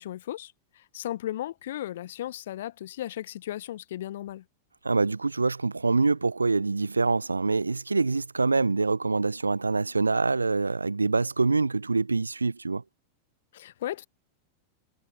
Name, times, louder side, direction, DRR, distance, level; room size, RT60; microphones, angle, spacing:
voice 1, 0.0-4.4 13.5-14.1, left 13 dB, 60° left, 0.9 m, -36 dB
voice 2, 4.8-12.8, right 3 dB, 80° right, 0.3 m, -25 dB
figure-of-eight pair, 90°, 0 cm